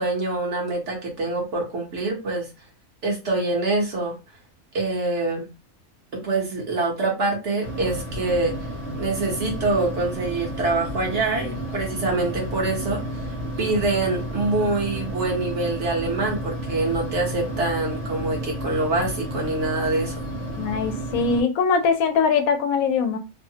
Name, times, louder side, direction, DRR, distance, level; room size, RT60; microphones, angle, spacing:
voice 1, 0.0-2.5 3.0-4.2 4.7-5.5 6.1-8.5 9.0-13.3 13.6-20.2, right 2 dB, 60° right, 0 dB, 1.3 m, -25 dB
sound 1, 7.6-21.4, right 1 dB, 90° right, 1.4 m, -31 dB
voice 2, 20.6-23.2, left 5 dB, 90° left, 8 dB, 1.0 m, -21 dB
3.0 x 2.0 x 2.7 m, 0.28 s
omnidirectional pair, 1.4 m